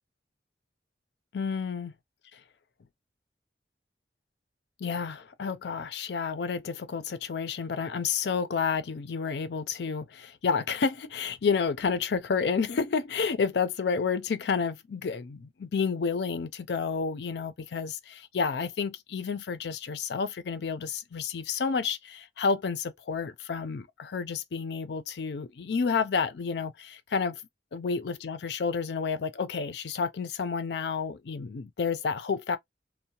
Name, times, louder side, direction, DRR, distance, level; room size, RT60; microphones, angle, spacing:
voice 1, 1.3-1.9 2.3-2.4 4.8-27.4 27.7-32.6, left 5 dB, 70° left, 0.4 m, -30 dB
2.7 x 2.1 x 2.7 m
head